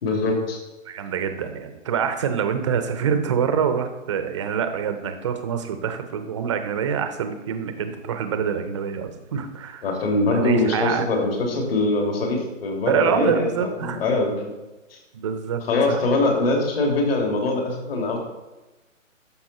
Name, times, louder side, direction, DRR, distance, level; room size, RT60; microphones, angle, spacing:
voice 1, 0.0-0.6 9.8-14.5 14.9-15.0 15.6-18.2, left 2 dB, 45° left, 1 dB, 2.7 m, -23 dB
voice 2, 0.9-9.9 10.3-11.1 12.9-14.0 15.1-15.6 15.9-16.0, right 7 dB, 25° right, 8 dB, 0.6 m, -25 dB
11.5 x 7.2 x 4.1 m, 1.1 s
hypercardioid pair, 150°, 39 cm